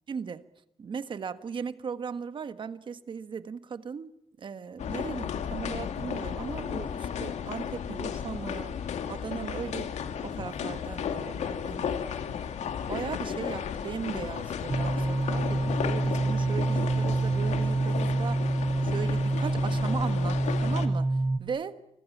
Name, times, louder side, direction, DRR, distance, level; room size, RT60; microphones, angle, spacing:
voice 1, 0.1-0.4 0.8-4.1 4.4-8.8 9.1-9.9 10.2-12.0 12.8-18.6 18.8-21.8, right 6 dB, 45° right, 1.4 m, -37 dB
sound 1, 4.8-20.9, left 7 dB, 85° left, 2.5 m, -34 dB
sound 2, 14.7-21.4, right 2 dB, 15° right, 1.2 m, -27 dB
29.5 x 25.0 x 7.3 m
wide cardioid pair, 150°, 11 cm